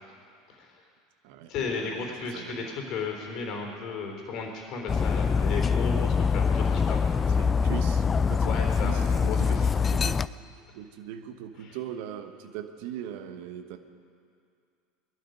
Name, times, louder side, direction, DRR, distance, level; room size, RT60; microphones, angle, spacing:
voice 1, 0.5-0.8 1.5-7.0 8.4-9.7 11.6-11.8, left 4 dB, 50° left, 2 dB, 3.5 m, -34 dB
voice 2, 1.2-2.7 7.3-9.6 9.9-10.4 10.7-13.8, right 10 dB, 60° right, 9 dB, 1.1 m, -40 dB
Dog, 4.9-10.3, left 5 dB, 25° left, 0.4 m, -24 dB
21.5 x 11.5 x 5.2 m, 2.4 s
hypercardioid pair, 75°, 0 cm